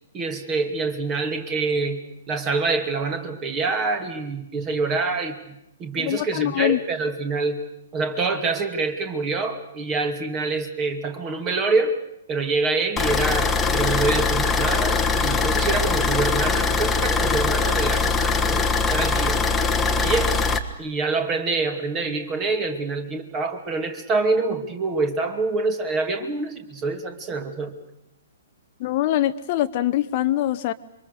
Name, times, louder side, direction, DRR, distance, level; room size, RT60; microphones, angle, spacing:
voice 1, 0.1-2.0 2.3-7.6 7.9-12.0 12.3-19.4 20.0-20.4 20.8-27.8, right 3 dB, 25° right, 7 dB, 2.5 m, -26 dB
voice 2, 6.0-6.8 28.8-30.7, left 13 dB, 40° left, 11 dB, 0.9 m, -23 dB
sound 1, 13.0-20.6, left 4 dB, 10° left, 1.5 m, -22 dB
27.5 x 23.5 x 6.7 m, 0.82 s
figure-of-eight pair, 115°, 0 cm